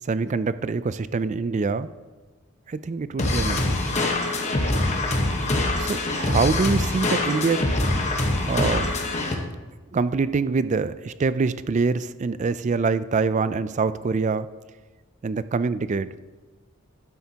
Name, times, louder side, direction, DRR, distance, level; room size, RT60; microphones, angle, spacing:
voice 1, 0.1-1.9 2.7-3.8 5.8-7.6 8.4-9.0 9.9-14.5 15.2-16.1, right 4 dB, 35° right, 14 dB, 0.3 m, -25 dB
sound 1, 3.2-9.3, left 2 dB, 30° left, 1.2 m, -24 dB
12.5 x 9.4 x 2.9 m, 1.3 s
head